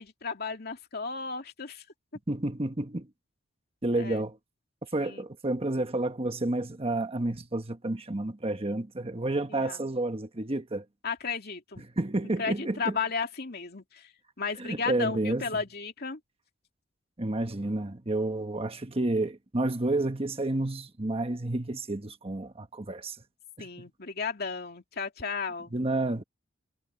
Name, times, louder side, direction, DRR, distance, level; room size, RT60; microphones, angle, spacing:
voice 1, 0.0-1.9 3.9-4.2 5.0-5.3 9.5-9.8 11.0-11.9 12.4-14.1 14.4-16.2 23.6-25.8, left 5 dB, 55° left, 2.7 m, -34 dB
voice 2, 2.3-3.1 3.8-4.4 4.9-10.8 12.0-12.9 14.6-15.4 17.2-23.2 23.6-23.7 25.7-26.2, right 2 dB, 30° right, 1.2 m, -30 dB
head